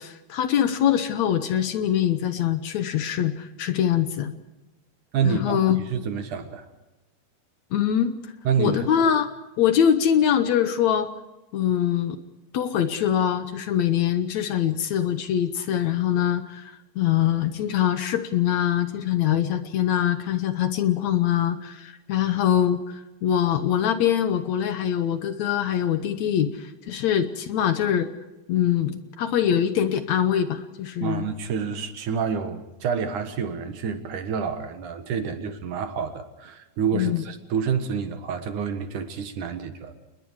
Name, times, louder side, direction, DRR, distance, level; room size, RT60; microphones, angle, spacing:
voice 1, 0.0-4.3 5.2-5.8 7.7-8.2 8.6-9.3 9.6-11.1 11.5-12.2 12.5-28.1 28.5-31.3 36.9-37.2, left 10 dB, 70° left, 10 dB, 1.7 m, -23 dB
voice 2, 5.1-5.6 5.9-6.7 8.4-8.9 31.0-39.9, right 6 dB, 60° right, 8 dB, 2.7 m, -28 dB
30.0 x 20.5 x 4.8 m, 1.0 s
omnidirectional pair, 4.5 m